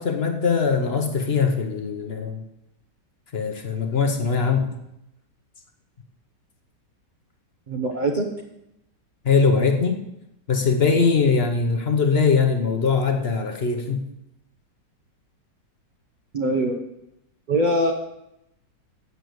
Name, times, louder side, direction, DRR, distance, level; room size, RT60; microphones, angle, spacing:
voice 1, 0.0-2.4 3.3-4.7 9.2-10.0 10.5-14.1, left 5 dB, 45° left, 5 dB, 0.9 m, -21 dB
voice 2, 7.7-8.3 16.3-16.8 17.5-17.9, right 1 dB, 40° right, 2 dB, 0.7 m, -22 dB
8.2 x 6.7 x 7.8 m, 0.84 s
omnidirectional pair, 1.9 m